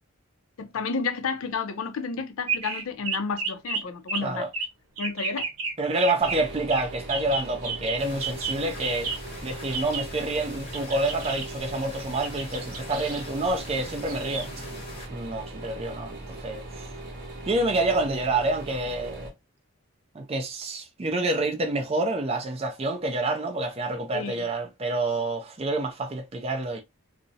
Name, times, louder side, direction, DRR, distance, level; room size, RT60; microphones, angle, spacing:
voice 1, 0.6-4.5 5.0-5.5 24.1-24.4, left 5 dB, 70° left, 0.4 m, -31 dB
sound 1, 2.5-3.8 4.1-4.2 4.5-4.7 5.0-5.7 6.0-6.4 6.7-6.8 7.1-9.2 9.7-10.0 10.7-14.8, right 4 dB, 85° right, 0.8 m, -32 dB
voice 2, 5.8-9.1 9.4-14.5 15.1-16.9 17.5-19.3 20.1-26.8, right 2 dB, 30° right, 0.4 m, -28 dB
sound 2, 6.2-19.3, right 1 dB, 50° right, 0.8 m, -40 dB
sound 3, 8.0-15.1, left 2 dB, 25° left, 0.8 m, -44 dB
2.4 x 2.0 x 2.5 m
head